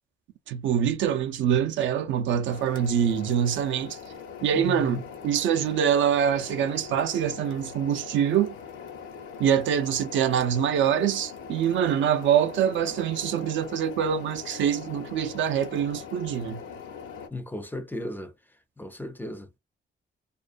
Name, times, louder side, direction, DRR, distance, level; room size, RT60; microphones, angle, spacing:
voice 1, 0.5-4.0 4.4-8.6 9.4-16.6, right 9 dB, 70° right, 0.5 m, -25 dB
sound 1, 2.5-17.3, left 6 dB, 80° left, 0.8 m, -42 dB
voice 2, 17.3-18.3 18.8-19.6, left 1 dB, 10° left, 0.4 m, -35 dB
2.4 x 2.2 x 2.4 m
cardioid pair, 90°, 20 cm